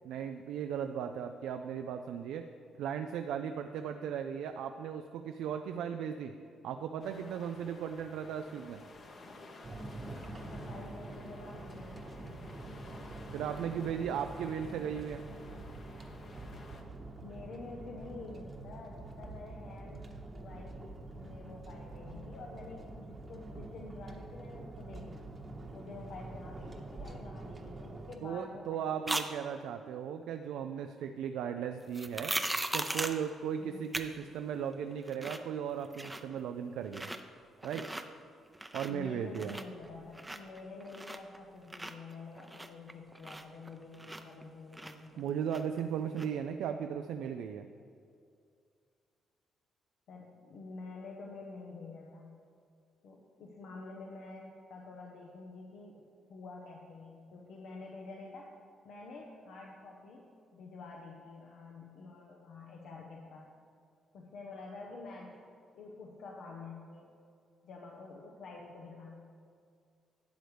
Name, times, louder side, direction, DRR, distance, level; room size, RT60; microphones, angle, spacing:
voice 1, 0.0-2.5 2.8-6.3 6.6-8.8 13.3-15.2 28.2-32.4 32.7-37.1 37.6-37.9 38.7-39.6 45.2-47.7, right 8 dB, 85° right, 7 dB, 0.3 m, -37 dB
sound 1, 7.0-16.8, left 2 dB, 50° left, 1.1 m, -53 dB
sound 2, 9.6-28.2, right 2 dB, 30° right, 1.0 m, -46 dB
voice 2, 10.5-12.4 17.2-20.8 21.1-25.4 25.7-29.1 33.6-33.8 38.9-45.3 50.1-52.4 53.0-56.0 56.3-58.5 58.8-60.2 60.5-63.5 64.1-65.4 65.7-67.1 67.6-69.2, left 3 dB, 75° left, -1 dB, 0.9 m, -48 dB
sound 3, 29.1-29.3 31.9-33.2 33.9-34.1 34.4-34.5 34.9-35.5 35.8-36.4 36.8-37.2 37.6-38.0 38.5-39.1 39.3-41.4 41.7-44.4 44.7-45.8 46.2-46.3, right 1 dB, 10° right, 0.6 m, -38 dB
12.0 x 8.1 x 3.3 m, 2.3 s
cardioid pair, 90°, 0 cm